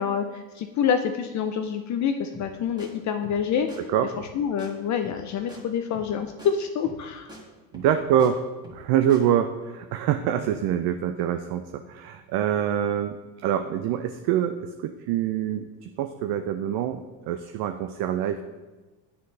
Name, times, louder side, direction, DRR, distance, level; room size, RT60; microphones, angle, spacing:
voice 1, 0.0-3.7 4.3-7.3, left 7 dB, 40° left, 6 dB, 0.4 m, -27 dB
sound 1, 2.3-2.5 2.8-2.9 3.2-3.4 3.7-3.8 4.1-4.3 4.6-4.7 5.0-5.2 5.5-5.6 5.9-6.1 6.4-6.5 6.8-7.0 7.3-7.4 7.7-8.3 8.6-8.8 9.1-9.2, equal, 10° right, 1.7 m, -44 dB
voice 2, 7.7-8.4 8.7-13.2 13.4-18.4, right 10 dB, 55° right, 7 dB, 0.5 m, -25 dB
9.5 x 4.0 x 3.2 m, 1.2 s
supercardioid pair, 95°, 48 cm